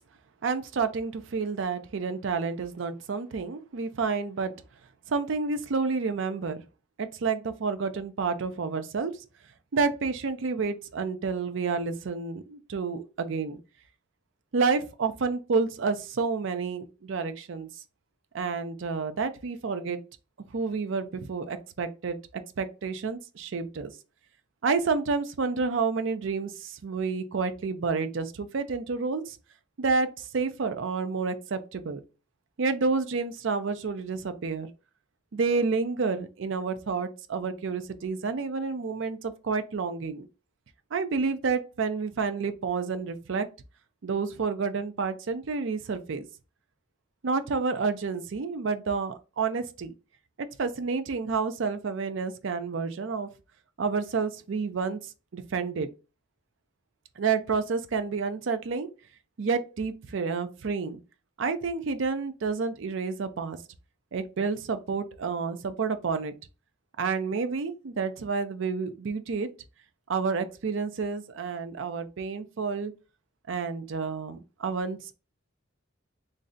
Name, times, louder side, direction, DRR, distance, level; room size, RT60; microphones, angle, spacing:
voice 1, 0.4-4.5 5.1-6.6 7.0-9.1 9.7-13.6 14.5-17.7 18.3-20.0 20.5-23.9 24.6-29.4 29.8-32.0 32.6-34.7 35.3-40.3 40.9-43.5 44.0-46.3 47.2-49.9 50.6-53.3 53.8-55.9 57.2-58.9 59.4-61.0 61.4-63.6 64.1-66.3 67.0-69.5 70.1-72.9 73.5-75.1, right 4 dB, 65° right, 0.5 m, -29 dB
3.2 x 2.6 x 3.7 m
head